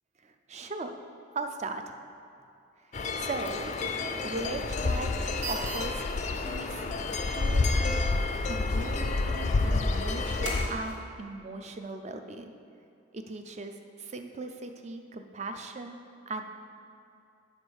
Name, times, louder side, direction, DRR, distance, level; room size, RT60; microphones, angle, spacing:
voice 1, 0.2-0.9 1.3-2.0 3.1-5.2 5.5-6.1 6.3-6.8 7.3-8.0 8.4-12.5 13.1-16.0 16.3-16.4, right 3 dB, 35° right, 6 dB, 0.4 m, -38 dB
sound 1, 2.9-10.7, left 3 dB, 35° left, 0.4 m, -29 dB
sound 2, 5.1-11.0, right 2 dB, 75° right, 1.8 m, -43 dB
8.3 x 5.1 x 6.2 m, 2.5 s
head